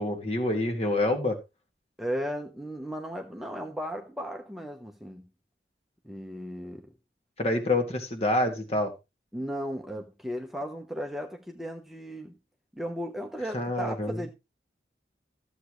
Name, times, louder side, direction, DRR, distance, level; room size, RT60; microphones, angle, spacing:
voice 1, 0.0-1.4 7.4-8.9 13.5-14.2, left 1 dB, 35° left, 2.0 m, -27 dB
voice 2, 2.0-5.3 6.0-6.9 9.3-12.4 12.7-14.3, equal, ahead, 0.9 m, -35 dB
14.0 x 8.1 x 3.2 m
head